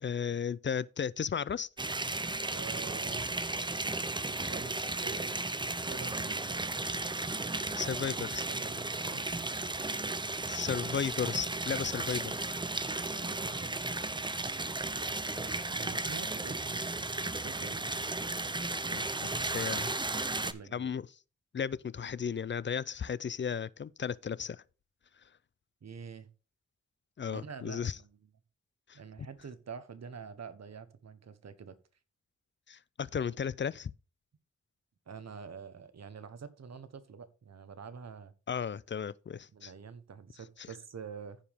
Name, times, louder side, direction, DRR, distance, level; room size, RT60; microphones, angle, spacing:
voice 1, 0.0-1.7 7.8-8.4 10.5-12.3 18.9-20.0 20.7-21.1 21.5-24.6 27.2-28.0 28.9-29.3 32.7-33.9 38.5-39.7, left 7 dB, 40° left, 0.4 m, -35 dB
sound 1, 1.8-20.5, right 2 dB, 15° right, 0.6 m, -35 dB
voice 2, 2.5-3.3 4.5-6.7 7.8-9.3 13.0-13.7 15.3-18.2 20.1-20.9 25.8-26.3 27.3-28.2 28.9-31.8 35.1-38.3 39.5-41.4, right 6 dB, 60° right, 1.1 m, -47 dB
14.5 x 5.0 x 3.5 m
wide cardioid pair, 85°, 29 cm